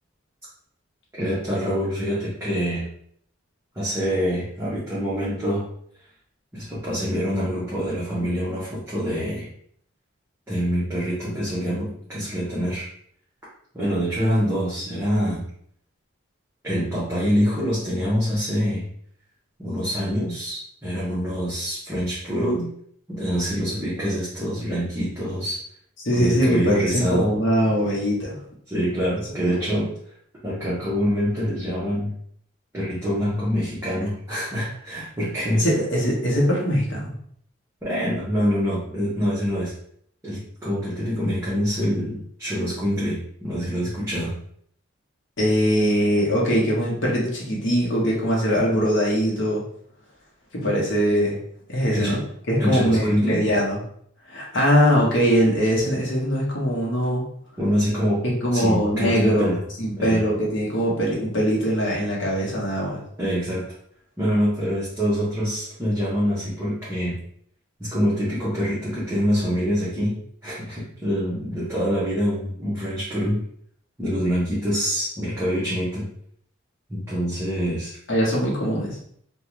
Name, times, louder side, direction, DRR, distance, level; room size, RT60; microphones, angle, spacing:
voice 1, 1.2-2.9 3.7-5.7 6.5-9.5 10.5-12.9 13.7-15.4 16.6-18.9 19.6-22.7 23.1-25.6 26.1-27.3 28.7-29.9 30.4-32.1 32.7-35.7 37.8-39.7 40.2-44.4 51.9-52.2 52.6-53.4 57.6-58.2 58.5-59.6 60.0-60.2 63.2-63.6 64.2-67.2 67.8-73.4 74.0-76.1 76.9-77.9, equal, 10° right, -10 dB, 0.7 m, -25 dB
voice 2, 26.0-28.4 29.4-29.6 35.6-37.1 45.4-49.6 50.5-51.4 51.7-52.2 52.5-53.8 54.3-57.2 58.2-59.5 59.8-63.0 78.1-79.0, equal, 60° left, -3 dB, 0.9 m, -22 dB
2.5 x 2.3 x 3.0 m, 0.65 s
head